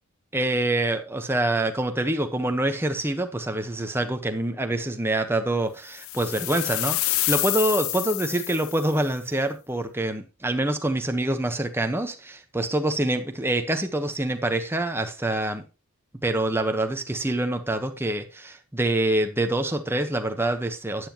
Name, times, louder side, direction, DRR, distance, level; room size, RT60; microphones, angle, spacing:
voice 1, 0.3-15.6 16.2-21.1, right 1 dB, 10° right, 1.1 m, -26 dB
sound 1, 6.0-9.0, left 18 dB, 65° left, 0.4 m, -28 dB
12.5 x 9.5 x 3.0 m
head